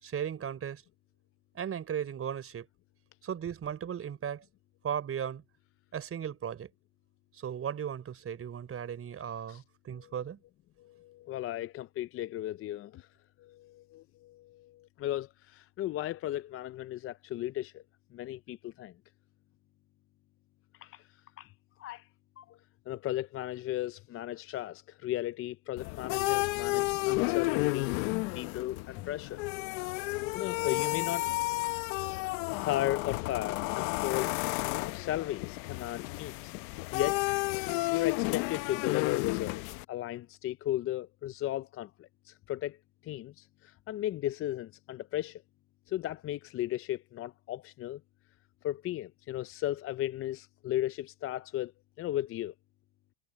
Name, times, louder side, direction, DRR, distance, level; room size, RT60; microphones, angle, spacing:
voice 1, 0.0-0.8 1.5-2.7 3.2-4.4 4.8-5.4 5.9-6.7 7.3-10.4, right 8 dB, 30° right, 5.6 m, -36 dB
voice 2, 10.8-13.1 13.4-17.8 18.1-18.9 20.8-21.1 21.4-21.5 21.8-22.1 22.4-22.6 22.9-28.0 28.3-29.4 29.9-31.3 32.5-34.3 34.7-36.5 36.9-37.3 37.6-42.8 43.0-45.4 45.9-48.0 48.6-51.7 52.0-52.5, left 14 dB, 30° left, 0.5 m, -36 dB
sound 1, 25.8-39.8, left 25 dB, 65° left, 1.1 m, -32 dB
supercardioid pair, 110°, 44 cm